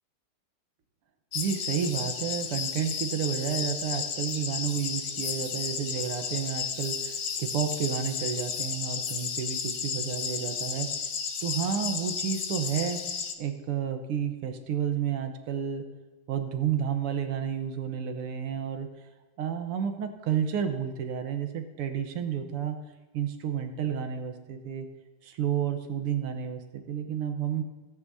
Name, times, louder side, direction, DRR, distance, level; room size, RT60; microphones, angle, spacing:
sound 1, 1.3-13.3, left 6 dB, 55° left, 1.2 m, -33 dB
voice 1, 1.3-10.9 11.4-13.0 13.4-15.9 16.3-18.9 19.4-22.8 23.1-24.9 25.2-27.6, right 8 dB, 90° right, 6 dB, 2.0 m, -31 dB
17.0 x 9.6 x 2.8 m, 1.2 s
omnidirectional pair, 2.4 m